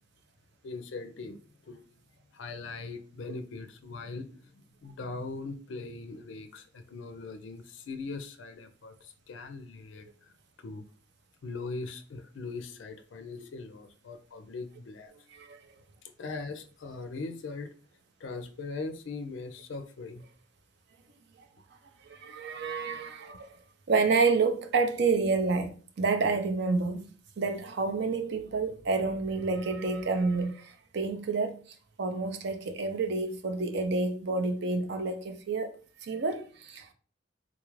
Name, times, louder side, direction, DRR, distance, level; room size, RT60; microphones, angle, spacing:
voice 1, 0.6-1.4 1.6-1.8 2.3-4.5 4.8-10.3 10.6-10.8 11.4-15.1 16.0-17.7 18.2-20.2, left 3 dB, 70° left, 0.4 m, -40 dB
voice 2, 22.0-23.6 23.9-35.7 36.0-36.9, right 4 dB, 60° right, 0.5 m, -29 dB
3.7 x 2.4 x 3.1 m
head